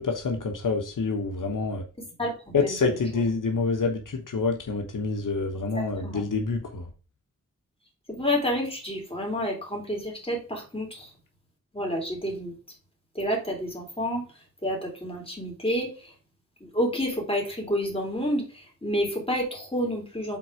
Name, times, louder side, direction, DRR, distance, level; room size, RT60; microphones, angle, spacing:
voice 1, 0.0-1.8 2.5-6.9, left 4 dB, 75° left, 3 dB, 1.1 m, -27 dB
voice 2, 2.0-3.2 5.5-6.2 8.1-11.1 11.7-12.6 13.1-14.3 14.6-16.1 16.6-20.4, equal, 15° left, 0 dB, 3.4 m, -29 dB
5.9 x 4.3 x 4.9 m, 0.35 s
cardioid pair, 60°, 32 cm